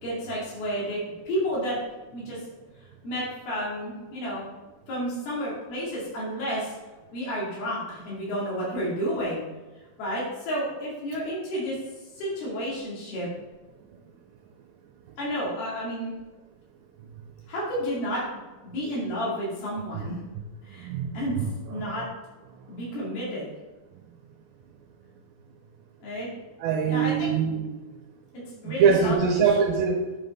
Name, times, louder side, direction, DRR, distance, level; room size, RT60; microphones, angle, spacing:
voice 1, 0.0-1.8 2.1-2.4 3.0-4.4 4.9-6.7 7.1-9.4 10.0-11.8 12.2-13.3 15.2-16.1 17.5-20.2 20.7-20.9 21.1-21.4 21.7-22.0 22.7-23.5 26.0-26.3 26.9-27.3 28.6-29.1, equal, 80° left, -7 dB, 4.2 m, -31 dB
voice 2, 20.8-21.5 21.8-22.1 26.6-27.8 28.7-30.0, right 6 dB, 80° right, 0 dB, 2.5 m, -23 dB
9.3 x 5.6 x 4.0 m, 1.2 s
omnidirectional pair, 4.3 m